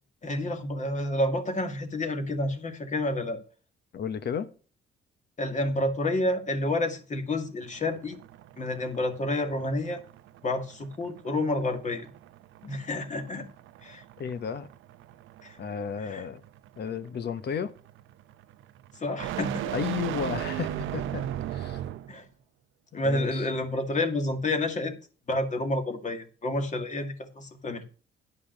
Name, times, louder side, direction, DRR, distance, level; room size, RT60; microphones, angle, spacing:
voice 1, 0.2-3.4 5.4-8.2 8.6-10.0 10.4-12.1 12.6-13.5 13.8-14.0 15.4-15.6 16.0-16.3 18.9-19.7 22.1-22.3 22.9-24.9 25.3-27.8, left 1 dB, 40° left, 2.1 m, -29 dB
voice 2, 3.9-4.5 14.2-14.7 15.6-16.4 16.8-17.7 19.7-21.8 23.0-23.4, left 7 dB, 55° left, 1.1 m, -33 dB
sound 1, 7.6-22.2, right 12 dB, 85° right, 0.6 m, -38 dB
10.5 x 5.5 x 6.6 m
cardioid pair, 90°, 20 cm